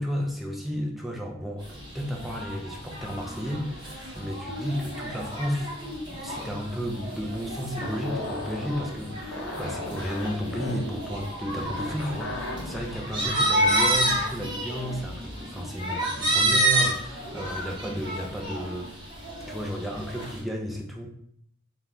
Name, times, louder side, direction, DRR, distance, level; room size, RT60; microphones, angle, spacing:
voice 1, 0.0-5.8 6.0-19.1 19.5-21.1, equal, ahead, -1 dB, 0.3 m, -33 dB
sound 1, 1.6-20.4, right 1 dB, 25° right, 0.8 m, -30 dB
sound 2, 7.8-13.0, left 2 dB, 80° left, 0.5 m, -37 dB
2.5 x 2.2 x 3.2 m, 0.69 s
head